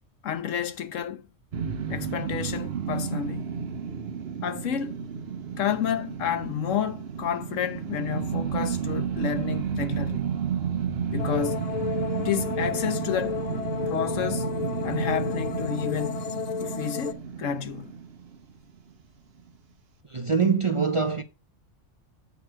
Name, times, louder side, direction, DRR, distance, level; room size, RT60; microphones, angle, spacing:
voice 1, 0.2-1.2 1.9-3.5 4.4-5.0 5.6-10.3 11.1-11.6 12.2-13.4 13.9-14.5 14.8-16.3 16.6-17.9, left 8 dB, 85° left, 1.2 m, -30 dB
sound 1, 1.5-18.7, right 7 dB, 55° right, 1.0 m, -32 dB
sound 2, 11.2-17.1, left 6 dB, 60° left, 0.4 m, -32 dB
voice 2, 20.1-21.2, right 5 dB, 40° right, 0.5 m, -24 dB
8.2 x 6.0 x 4.5 m
omnidirectional pair, 1.3 m